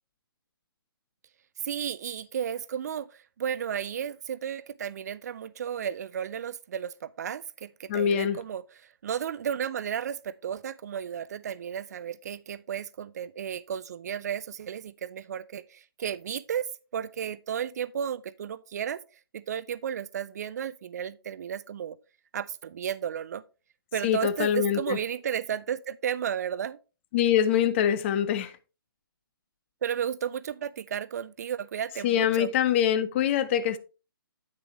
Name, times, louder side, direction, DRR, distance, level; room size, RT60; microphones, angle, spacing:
voice 1, 1.6-16.7 16.9-19.0 19.3-22.0 22.3-23.4 23.9-26.8 29.8-32.5, right 8 dB, 45° right, 0.4 m, -33 dB
voice 2, 7.9-8.4 24.0-25.0 27.1-28.5 32.0-33.8, left 9 dB, 30° left, 0.6 m, -24 dB
8.9 x 6.7 x 3.1 m
figure-of-eight pair, 135°, 12 cm